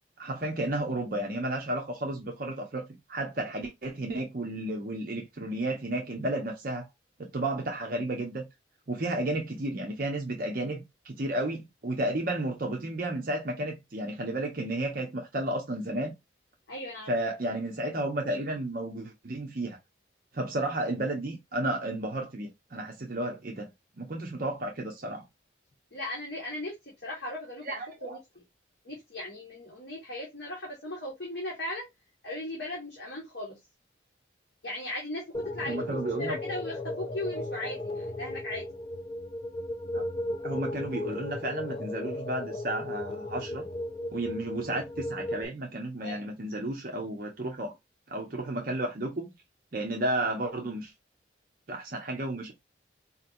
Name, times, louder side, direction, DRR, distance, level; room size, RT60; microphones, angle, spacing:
voice 1, 0.2-6.9 7.2-8.4 8.9-16.2 17.1-19.8 20.3-23.7 24.0-25.2 27.6-28.2 35.7-36.4 39.9-40.0 40.4-43.6 44.1-47.7 48.1-49.3 49.7-50.9 51.7-52.5, right 1 dB, 50° right, 0.7 m, -32 dB
voice 2, 16.7-17.1 25.9-27.6 28.0-28.4 28.8-31.9 32.2-33.6 34.6-35.2 35.5-38.6 46.0-46.2, left 1 dB, 60° left, 1.3 m, -37 dB
sound 1, 35.3-45.5, left 1 dB, 25° left, 0.5 m, -35 dB
4.2 x 2.8 x 2.6 m
head